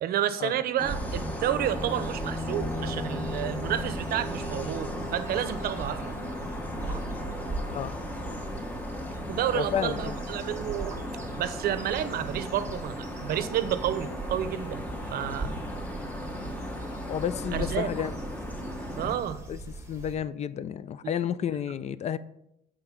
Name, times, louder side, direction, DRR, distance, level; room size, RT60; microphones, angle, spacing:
voice 1, 0.0-6.1 9.3-11.0 11.4-14.8 15.1-15.6 17.5-17.9 19.0-19.4, right 11 dB, 65° right, 0.6 m, -30 dB
sound 1, 0.8-19.2, left 1 dB, 10° left, 0.9 m, -36 dB
sound 2, 0.8-20.2, right 3 dB, 15° right, 1.1 m, -40 dB
voice 2, 9.5-10.2 17.1-18.1 19.5-19.6 19.9-22.2, left 9 dB, 40° left, 0.4 m, -31 dB
8.0 x 3.8 x 5.7 m
cardioid pair, 110°, 17 cm